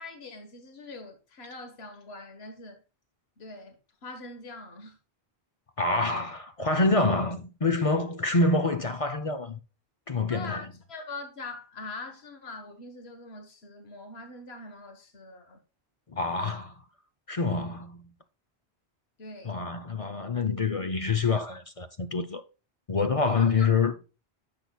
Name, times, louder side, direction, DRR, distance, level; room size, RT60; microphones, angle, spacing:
voice 1, 0.0-2.8 3.4-5.0 10.3-15.6 19.2-19.6 23.3-23.7, left 3 dB, 75° left, 1.6 m, -43 dB
voice 2, 5.8-9.6 10.1-10.6 16.1-16.7 17.3-18.1 19.4-22.4 22.9-23.9, left 3 dB, 40° left, 0.7 m, -26 dB
10.5 x 7.0 x 2.3 m
omnidirectional pair, 1.1 m